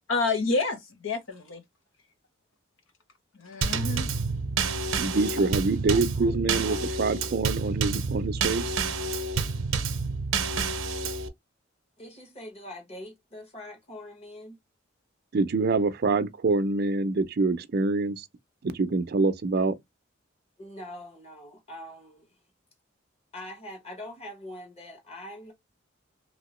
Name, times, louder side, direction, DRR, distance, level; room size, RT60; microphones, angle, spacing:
voice 1, 0.1-1.6 3.4-4.1 5.4-5.5 5.9-6.0 6.3-6.4 6.7-6.8, left 3 dB, 80° left, 0.8 m, -29 dB
Drum kit / Snare drum / Bass drum, 3.6-11.3, right 4 dB, 90° right, 0.6 m, -29 dB
voice 2, 5.0-8.7 15.3-18.2 18.6-19.7, right 3 dB, 50° right, 0.5 m, -26 dB
voice 3, 12.0-14.6 20.6-22.4 23.3-25.5, left 1 dB, 30° left, 1.3 m, -43 dB
2.9 x 2.8 x 3.0 m
head